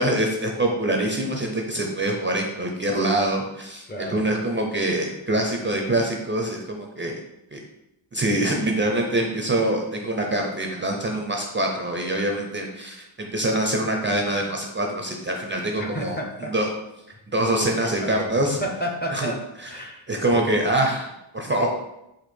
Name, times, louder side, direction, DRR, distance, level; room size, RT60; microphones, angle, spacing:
voice 1, 0.0-7.2 7.5-7.6 8.1-16.7 17.3-18.6 19.1-19.3 19.6-19.7 20.1-21.7, right 1 dB, 25° right, 1 dB, 0.5 m, -25 dB
voice 2, 3.9-4.3 15.8-16.5 17.4-19.4 19.7-20.7, equal, 20° left, 2 dB, 0.7 m, -32 dB
4.4 x 2.5 x 4.3 m, 0.87 s
wide cardioid pair, 100°, 49 cm